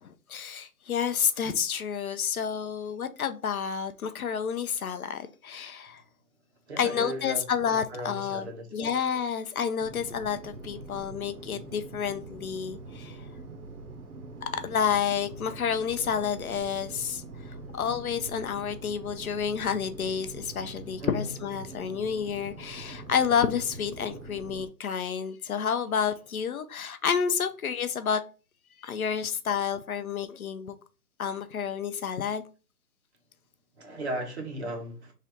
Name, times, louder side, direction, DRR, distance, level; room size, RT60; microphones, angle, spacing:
voice 1, 0.0-6.0 6.8-8.5 8.7-13.2 14.4-28.2 28.8-30.7 31.2-32.4, left 7 dB, 60° left, 0.5 m, -30 dB
voice 2, 6.7-7.4 7.7-8.9 21.0-21.3 33.8-35.1, right 1 dB, 45° right, 0.9 m, -36 dB
sound 1, 9.8-24.7, right 3 dB, 65° right, 0.8 m, -44 dB
3.2 x 2.4 x 4.2 m
hypercardioid pair, 170°, 48 cm